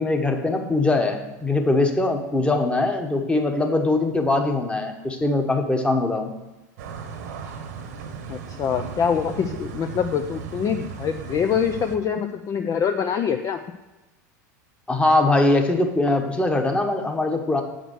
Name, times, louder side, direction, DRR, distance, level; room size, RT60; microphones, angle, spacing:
voice 1, 0.0-6.3 14.9-17.6, left 2 dB, 10° left, 4 dB, 1.3 m, -22 dB
sound 1, 6.8-12.0, right 6 dB, 70° right, 1.1 m, -36 dB
voice 2, 8.3-13.6, left 7 dB, 35° left, 6 dB, 0.5 m, -25 dB
7.6 x 5.0 x 6.2 m, 1.1 s
hypercardioid pair, 90°, 10 cm